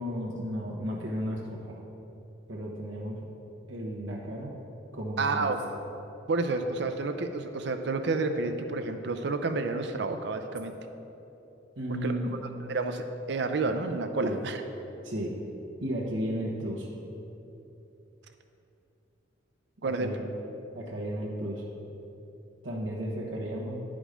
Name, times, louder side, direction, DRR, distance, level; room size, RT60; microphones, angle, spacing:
voice 1, 0.0-1.8 2.5-3.2 3.7-4.5 4.9-5.6 11.8-12.3 14.2-14.4 15.0-15.3 15.8-16.9 19.8-20.2 20.7-21.6 22.6-23.8, equal, 90° right, -3 dB, 1.2 m, -34 dB
voice 2, 5.2-5.6 6.3-10.7 12.0-12.4 12.7-14.6 19.8-20.1, right 3 dB, 60° right, 7 dB, 0.4 m, -30 dB
9.9 x 5.1 x 5.1 m, 3.0 s
head